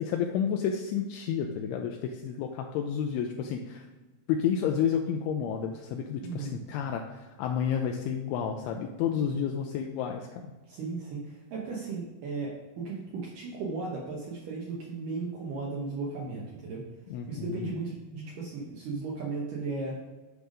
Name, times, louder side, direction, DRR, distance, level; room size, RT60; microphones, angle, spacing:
voice 1, 0.0-3.9 4.3-10.3 17.1-17.7, left 8 dB, 85° left, 3 dB, 2.4 m, -30 dB
voice 2, 6.2-6.6 9.3-9.5 10.7-16.8 17.3-20.0, right 3 dB, 70° right, -3 dB, 2.3 m, -36 dB
10.0 x 3.4 x 5.2 m, 1.2 s
omnidirectional pair, 4.7 m